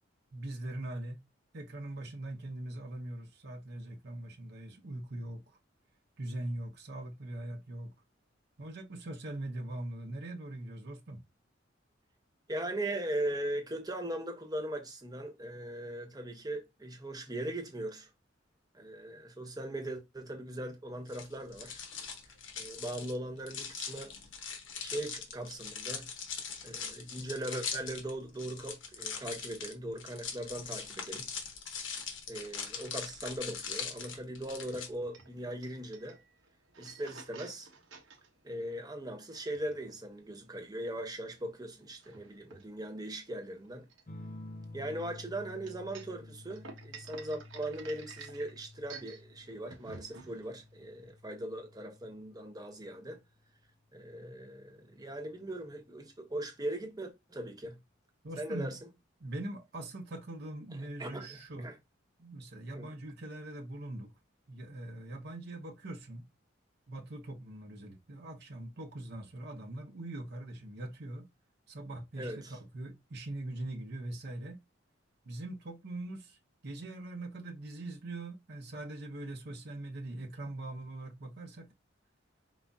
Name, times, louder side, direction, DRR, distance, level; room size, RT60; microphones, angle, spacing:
voice 1, 0.3-1.2 1.5-5.6 6.2-7.9 8.6-11.2 58.2-58.7 59.2-61.7 62.2-64.1 64.5-66.3 66.9-71.2 71.7-74.6 75.2-76.4 76.6-81.7, right 1 dB, 60° right, 0.8 m, -42 dB
voice 2, 12.5-18.1 18.7-21.8 22.6-24.1 24.8-26.1 26.6-31.2 32.3-36.2 36.8-37.7 38.4-43.9 44.7-53.2 53.9-57.8 58.4-58.8 61.0-61.8 62.7-62.9 72.2-72.6, right 1 dB, 20° right, 0.9 m, -39 dB
sound 1, 21.1-34.9, left 6 dB, 85° left, 1.1 m, -41 dB
sound 2, 34.5-51.1, right 5 dB, 85° right, 1.1 m, -53 dB
sound 3, 44.1-53.2 54.6-55.2, left 2 dB, 45° left, 0.7 m, -51 dB
4.9 x 3.9 x 2.4 m
head